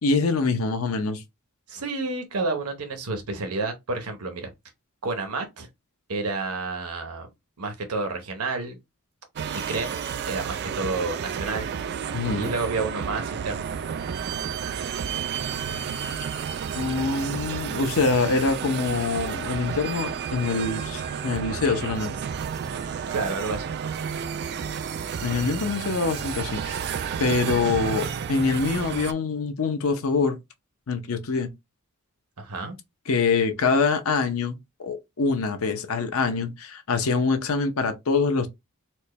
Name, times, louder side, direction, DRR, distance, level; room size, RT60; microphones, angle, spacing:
voice 1, 0.0-1.2 12.1-12.5 16.7-22.2 25.2-26.9 27.2-30.4 30.9-31.5 33.1-38.5, left 4 dB, 65° left, 0.7 m, -25 dB
voice 2, 1.7-4.5 5.0-5.7 6.1-7.3 7.6-8.8 9.5-11.7 12.4-13.7 22.7-23.7 32.4-32.8, right 3 dB, 80° right, 0.9 m, -30 dB
sound 1, 9.4-29.1, right 7 dB, 50° right, 0.3 m, -31 dB
4.3 x 2.2 x 3.2 m
head